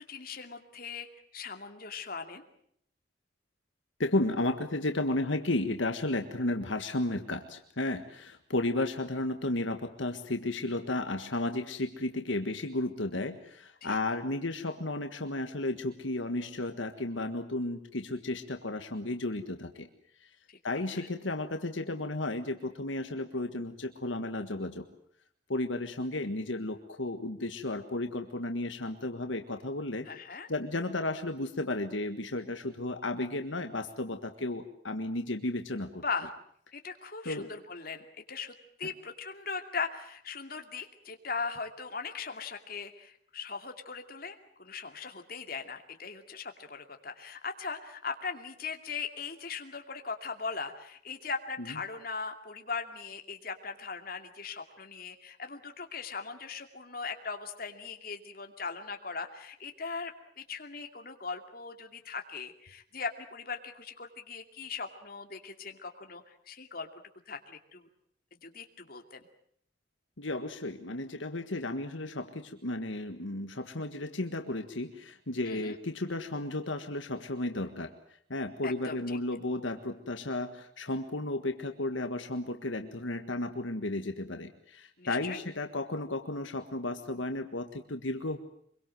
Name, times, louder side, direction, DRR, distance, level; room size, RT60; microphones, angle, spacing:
voice 1, 0.1-1.1 1.3-2.4 13.8-14.0 20.5-20.6 20.9-21.1 30.1-30.5 36.0-36.3 36.7-60.1 60.4-66.9 67.3-67.9 68.4-69.2 75.5-75.8 78.6-79.2 85.0-85.4, left 5 dB, 50° left, 5 dB, 2.6 m, -39 dB
voice 2, 4.0-19.9 20.6-24.9 25.5-30.1 30.5-36.0 37.2-37.5 70.2-77.9 78.3-88.4, left 2 dB, 80° left, 6 dB, 1.7 m, -33 dB
25.0 x 23.0 x 7.7 m, 0.67 s
head